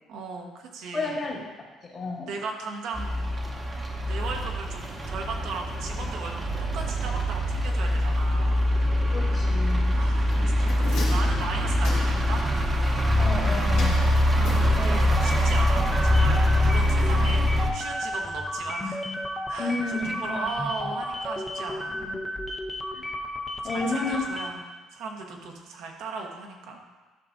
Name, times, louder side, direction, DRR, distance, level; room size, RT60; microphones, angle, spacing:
voice 1, 0.1-1.2 2.3-3.2 4.0-8.6 9.9-12.4 14.3-19.1 19.5-22.0 23.6-24.6 24.9-26.8, right 4 dB, 75° right, 1 dB, 1.1 m, -37 dB
voice 2, 0.9-1.4 1.8-2.3 9.1-10.0 13.2-13.9 14.7-14.9 19.6-20.5 21.9-22.2 22.9-23.1 23.6-24.2, left 3 dB, 40° left, -3 dB, 1.6 m, -31 dB
sound 1, 2.9-17.7, left 1 dB, 25° right, 0.9 m, -23 dB
sound 2, 10.3-12.4 13.7-15.2 15.5-15.6, left 4 dB, 75° left, 1.8 m, -38 dB
sound 3, 15.2-24.7, left 1 dB, 10° left, 0.7 m, -33 dB
11.5 x 5.9 x 2.6 m, 1.4 s
cardioid pair, 120°, 0 cm